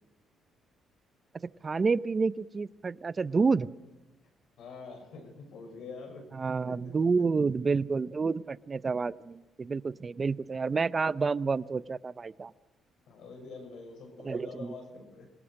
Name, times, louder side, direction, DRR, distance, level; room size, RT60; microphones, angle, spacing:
voice 1, 1.4-3.7 6.4-12.5 14.2-14.7, right 4 dB, 35° right, 18 dB, 0.6 m, -29 dB
voice 2, 4.6-6.3 6.7-7.4 13.1-15.3, left 4 dB, 75° left, 3 dB, 6.3 m, -46 dB
26.0 x 18.5 x 6.5 m, 1.1 s
cardioid pair, 90°, 0 cm